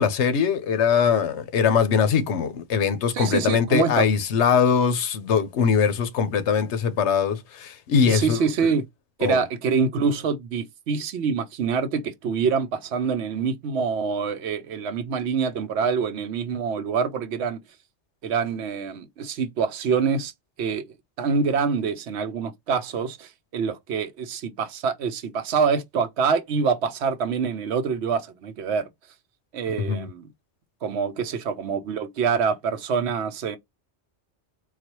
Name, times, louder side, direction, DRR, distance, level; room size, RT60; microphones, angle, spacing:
voice 1, 0.0-8.7 9.2-9.4 29.8-30.1, left 6 dB, 80° left, 1.0 m, -22 dB
voice 2, 3.1-4.1 8.1-8.9 9.2-17.6 18.2-20.3 20.6-20.9 21.2-28.9 29.5-30.3 30.8-33.6, right 5 dB, 75° right, 0.9 m, -25 dB
4.0 x 2.3 x 2.9 m
omnidirectional pair, 1.1 m